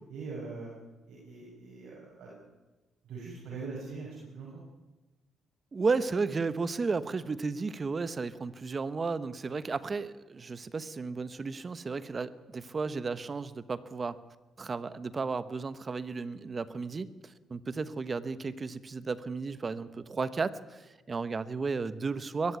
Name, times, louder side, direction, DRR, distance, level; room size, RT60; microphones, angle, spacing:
voice 1, 0.1-0.7 1.1-2.3 3.0-4.6, right 4 dB, 75° right, -5 dB, 6.8 m, -42 dB
voice 2, 5.7-14.2 14.6-22.6, right 4 dB, 35° right, 14 dB, 1.2 m, -33 dB
21.5 x 14.5 x 9.5 m, 1.1 s
cardioid pair, 90°, 0 cm